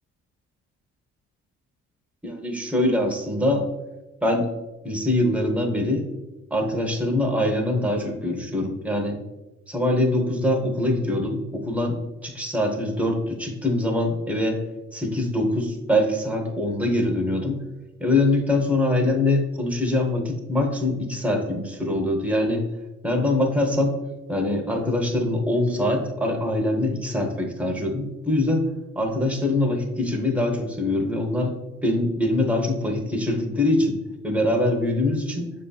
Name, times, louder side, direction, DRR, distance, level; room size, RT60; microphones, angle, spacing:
voice 1, 2.2-3.7 4.2-4.5 4.8-6.1 6.5-9.2 9.7-14.6 14.9-17.6 18.0-22.6 23.0-24.0 24.3-28.7 29.0-34.0 34.2-35.5, left 1 dB, 5° right, 2 dB, 0.7 m, -23 dB
6.6 x 2.7 x 2.2 m, 1.1 s
cardioid pair, 90°, 30 cm